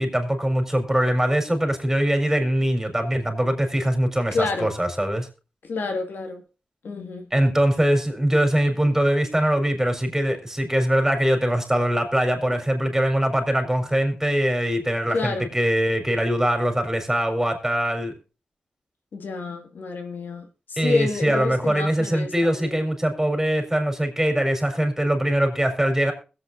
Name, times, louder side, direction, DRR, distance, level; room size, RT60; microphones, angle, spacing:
voice 1, 0.0-5.3 7.3-18.1 20.8-26.1, right 1 dB, 10° right, 4.4 m, -22 dB
voice 2, 4.3-4.7 5.6-6.4 6.8-7.3 15.1-15.5 19.1-22.8, left 3 dB, 85° left, 2.1 m, -29 dB
21.5 x 8.4 x 2.7 m
cardioid pair, 55°, 3 cm